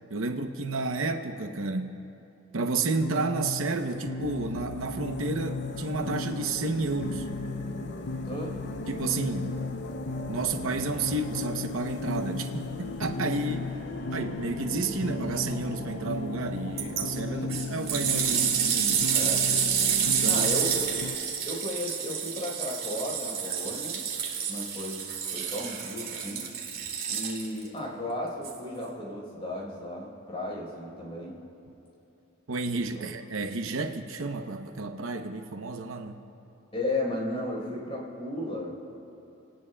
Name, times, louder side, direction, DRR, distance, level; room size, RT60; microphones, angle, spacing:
voice 1, 0.1-2.0 2.5-7.3 8.9-9.5 10.3-13.7 14.1-19.1 20.0-20.5 32.5-36.2, right 3 dB, 80° right, 6 dB, 0.8 m, -31 dB
sound 1, 2.6-21.2, left 3 dB, 55° left, 0.5 m, -36 dB
sound 2, 4.2-21.6, equal, 85° left, 1.3 m, -42 dB
voice 2, 8.2-8.6 17.3-17.6 19.1-19.5 20.2-20.9 21.4-24.1 24.5-26.5 27.1-31.4 32.9-33.1 36.7-38.8, left 1 dB, 30° left, -2 dB, 4.4 m, -34 dB
sound 3, 16.8-17.0 17.5-27.7 28.4-28.5, right 7 dB, 45° right, 2.4 m, -28 dB
28.5 x 19.5 x 2.3 m, 2.8 s
head